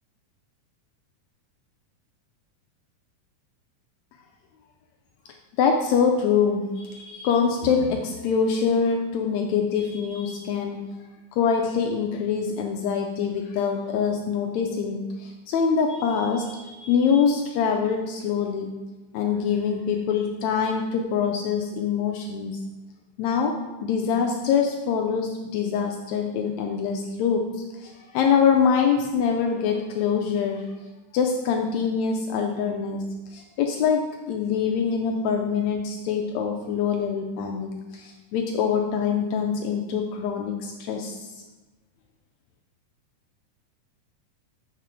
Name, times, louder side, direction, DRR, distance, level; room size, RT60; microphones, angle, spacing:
voice 1, 5.6-10.8 11.4-18.7 19.1-22.6 23.2-27.5 27.8-30.8 31.1-33.0 33.3-41.2, left 6 dB, 85° left, 2 dB, 1.6 m, -24 dB
7.4 x 5.8 x 3.5 m, 1.1 s
omnidirectional pair, 3.7 m